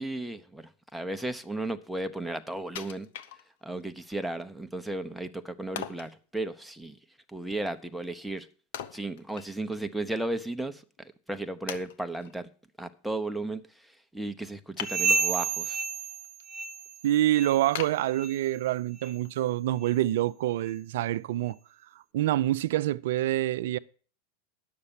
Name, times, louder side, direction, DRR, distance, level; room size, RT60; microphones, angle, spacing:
voice 1, 0.0-3.1 3.6-7.0 7.3-8.5 8.9-10.8 11.3-12.5 12.8-15.8, right 2 dB, ahead, 0.9 m, -34 dB
Wood, 2.8-3.9 4.3-4.4 5.8-6.2 8.7-9.9 10.2-10.3 11.0-11.1 11.7-12.4 14.7-15.5 16.0-16.4 16.9-17.0 17.8-18.8 19.2-19.3, left 9 dB, 70° left, 0.8 m, -40 dB
sound 1, 14.8-17.0 17.3-17.7 18.1-18.4 19.0-19.1 19.8-19.9 20.7-20.8, right 4 dB, 40° right, 0.8 m, -30 dB
voice 2, 17.0-21.6 22.1-23.8, right 14 dB, 70° right, 0.4 m, -26 dB
9.6 x 6.6 x 7.2 m
hypercardioid pair, 100°, 0 cm